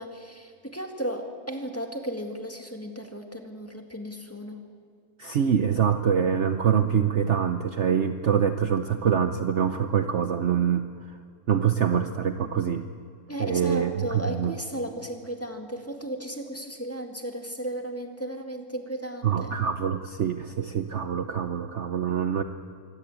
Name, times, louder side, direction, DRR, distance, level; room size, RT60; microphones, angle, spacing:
voice 1, 0.0-4.6 13.3-19.6, equal, 10° left, 4 dB, 1.9 m, -35 dB
voice 2, 5.2-10.9 11.5-12.8 13.4-14.5 19.2-22.4, right 8 dB, 55° right, 8 dB, 1.0 m, -25 dB
24.5 x 17.0 x 8.4 m, 2.3 s
omnidirectional pair, 1.7 m